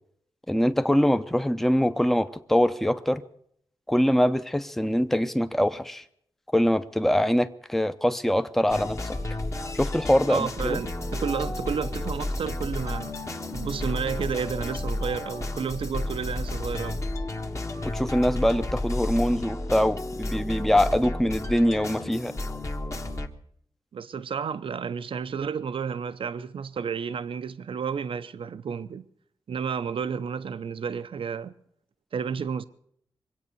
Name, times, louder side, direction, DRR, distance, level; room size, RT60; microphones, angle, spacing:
voice 1, 0.5-3.2 3.9-6.0 6.5-9.2 9.7-10.8 17.9-22.3, equal, 5° left, 0.7 m, -23 dB
sound 1, 8.7-23.3, left 2 dB, 35° left, 1.5 m, -32 dB
voice 2, 10.3-13.2 13.5-17.0 23.9-29.1 29.5-31.5 32.1-32.7, right 6 dB, 75° right, 0.7 m, -31 dB
23.0 x 8.7 x 6.9 m
wide cardioid pair, 85°, 9 cm